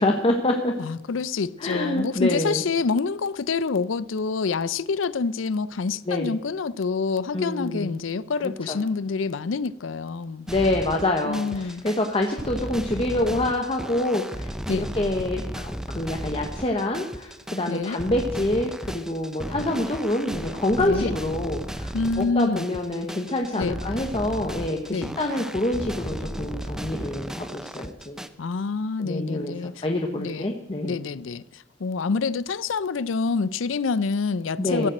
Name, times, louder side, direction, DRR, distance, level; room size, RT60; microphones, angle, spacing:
voice 1, 0.0-0.7 1.6-2.6 6.1-6.3 7.3-8.0 8.4-8.8 10.5-28.2 29.0-31.0 34.6-34.9, left 1 dB, 30° left, 1.1 m, -26 dB
voice 2, 0.8-10.5 11.2-11.8 14.7-14.9 17.7-18.0 20.8-21.1 21.9-22.7 23.6-23.8 24.9-25.2 28.4-29.8 30.1-30.5 30.8-34.9, left 4 dB, 85° left, 0.5 m, -27 dB
sound 1, 10.5-28.3, equal, 5° right, 0.6 m, -35 dB
15.0 x 7.3 x 7.8 m
head